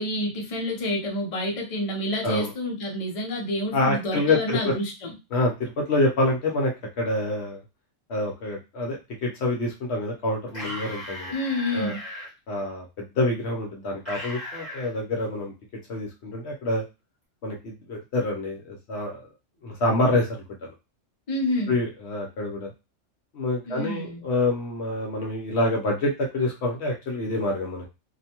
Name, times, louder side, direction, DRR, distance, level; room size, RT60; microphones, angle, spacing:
voice 1, 0.0-5.1 11.3-12.0 21.3-21.8 23.7-24.3, left 1 dB, 35° left, 0 dB, 0.6 m, -28 dB
voice 2, 3.7-4.7 5.3-7.6 8.1-11.3 11.7-11.9 12.5-15.5 15.9-16.8 17.4-19.2 19.6-20.3 21.7-22.7 23.3-27.9, left 2 dB, 65° left, 0 dB, 0.8 m, -26 dB
sound 1, 10.5-12.3 14.1-14.9, left 1 dB, 10° left, 1.1 m, -37 dB
2.5 x 2.2 x 2.8 m, 0.26 s
omnidirectional pair, 1.3 m